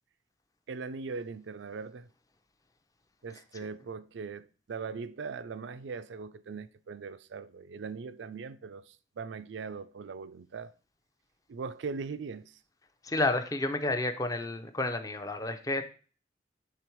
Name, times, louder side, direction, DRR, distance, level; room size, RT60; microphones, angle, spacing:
voice 1, 0.7-2.1 3.2-10.7 11.5-12.5, right 5 dB, 80° right, 0.4 m, -40 dB
voice 2, 13.0-15.8, left 2 dB, 20° left, 0.5 m, -30 dB
6.8 x 3.8 x 4.5 m
head